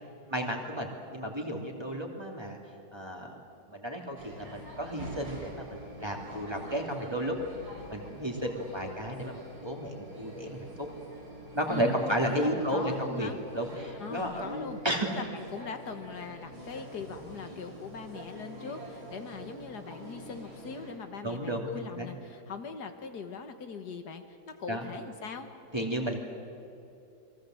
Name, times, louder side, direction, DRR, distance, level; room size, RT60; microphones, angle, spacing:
voice 1, 0.3-2.6 2.9-3.4 3.7-7.4 7.9-10.9 11.5-15.1 21.2-22.1 24.7-24.9 25.7-26.2, right 1 dB, 15° right, 1 dB, 2.8 m, -33 dB
sound 1, 4.2-20.9, equal, 65° right, 5.9 m, -46 dB
voice 2, 11.7-13.4 14.0-14.8 15.1-25.5, left 5 dB, 75° left, 7 dB, 2.0 m, -41 dB
29.0 x 22.5 x 7.9 m, 2.8 s
omnidirectional pair, 1.8 m